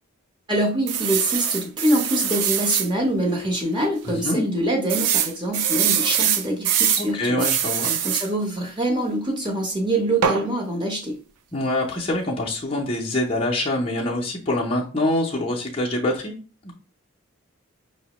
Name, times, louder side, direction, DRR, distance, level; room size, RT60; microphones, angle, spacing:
voice 1, 0.5-7.5 8.0-11.1, right 1 dB, 20° right, 1 dB, 0.8 m, -24 dB
sound 1, 0.9-2.9 3.4-3.5 3.8-3.9 4.9-7.1 7.4-8.3 10.2-10.5, right 9 dB, 90° right, 0.5 m, -23 dB
voice 2, 4.0-4.4 7.0-8.0 11.5-16.3 16.6-16.7, left 1 dB, 25° left, -3 dB, 0.5 m, -25 dB
5.5 x 2.1 x 2.9 m, 0.37 s
head